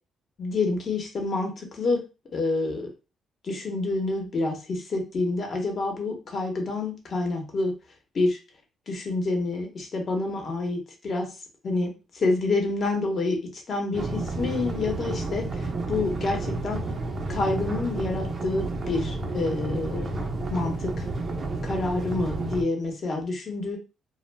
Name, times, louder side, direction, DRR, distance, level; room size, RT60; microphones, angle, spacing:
voice 1, 0.4-2.0 2.3-2.9 3.4-7.7 8.1-8.4 8.9-11.4 11.6-16.8 17.3-20.2 20.5-21.1 21.6-23.8, left 3 dB, 50° left, 3 dB, 0.9 m, -28 dB
sound 1, 13.9-22.6, right 2 dB, 40° right, 0.5 m, -31 dB
2.1 x 2.1 x 3.2 m, 0.31 s
cardioid pair, 90°, 0 cm